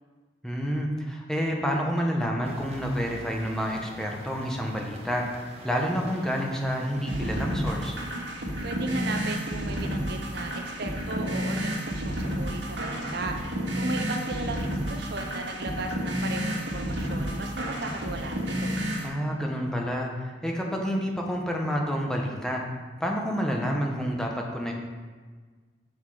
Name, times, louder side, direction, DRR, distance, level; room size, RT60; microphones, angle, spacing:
voice 1, 0.4-7.9 19.0-22.6 23.0-24.7, equal, 5° left, 0 dB, 0.8 m, -29 dB
sound 1, 2.4-7.5, right 1 dB, 35° right, 1.1 m, -45 dB
sound 2, 7.1-19.1, equal, 90° right, 1.6 m, -31 dB
voice 2, 8.6-18.8, right 2 dB, 60° right, 5 dB, 0.7 m, -36 dB
6.5 x 5.7 x 4.8 m, 1.5 s
head